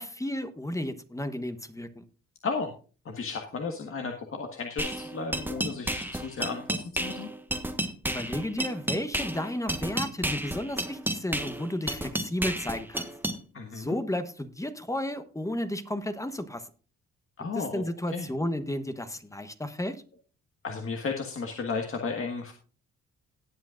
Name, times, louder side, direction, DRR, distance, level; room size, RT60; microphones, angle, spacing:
voice 1, 0.0-2.0 8.0-13.1 13.7-16.7 17.5-20.0, left 1 dB, 10° left, 10 dB, 1.1 m, -33 dB
voice 2, 3.0-7.3 13.5-13.9 17.4-18.3 20.6-22.5, left 4 dB, 45° left, 3 dB, 1.6 m, -34 dB
sound 1, 4.8-13.4, right 1 dB, 5° right, 1.2 m, -32 dB
18.0 x 8.4 x 2.5 m, 0.37 s
cardioid pair, 90°, 30 cm